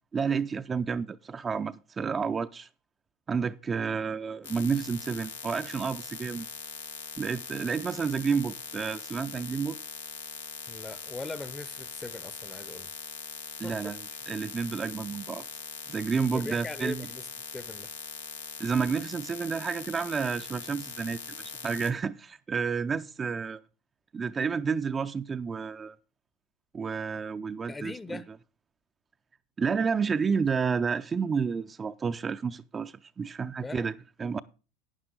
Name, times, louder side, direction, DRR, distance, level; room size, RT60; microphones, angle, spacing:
voice 1, 0.1-2.7 3.3-6.5 7.2-9.8 13.6-15.4 15.9-17.1 18.6-23.6 24.1-26.0 26.7-28.2 29.6-33.9 34.2-34.4, right 5 dB, 25° right, 0.5 m, -30 dB
sound 1, 4.4-21.9, left 6 dB, 85° left, 0.8 m, -41 dB
voice 2, 10.7-12.9 13.6-14.0 16.3-17.9 27.7-28.3 33.6-33.9, left 3 dB, 15° left, 0.7 m, -40 dB
11.0 x 9.6 x 3.8 m
hypercardioid pair, 80°, 0 cm